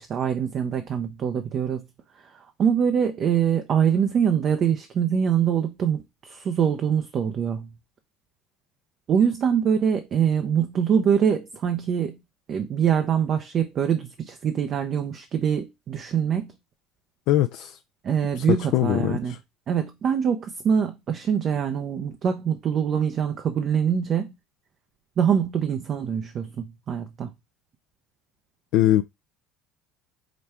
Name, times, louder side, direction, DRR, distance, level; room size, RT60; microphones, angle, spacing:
voice 1, 0.0-1.9 2.3-7.7 9.1-12.2 12.5-16.5 18.0-19.3 19.7-24.3 25.2-27.3, right 8 dB, 40° right, 0.6 m, -24 dB
voice 2, 17.3-17.8 18.3-19.4 28.7-29.0, left 14 dB, 70° left, 0.3 m, -22 dB
5.0 x 2.3 x 4.3 m
supercardioid pair, 110°, 0 cm